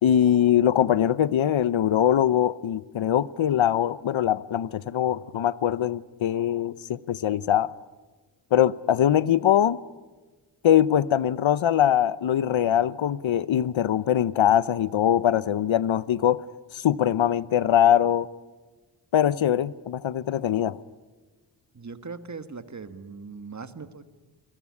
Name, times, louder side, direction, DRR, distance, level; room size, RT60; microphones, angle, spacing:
voice 1, 0.0-7.7 8.5-9.8 10.6-16.4 16.7-18.3 19.1-20.8, left 10 dB, 75° left, 0.8 m, -22 dB
voice 2, 21.7-24.0, right 4 dB, 35° right, 1.7 m, -39 dB
29.0 x 21.0 x 9.8 m
wide cardioid pair, 95°, 47 cm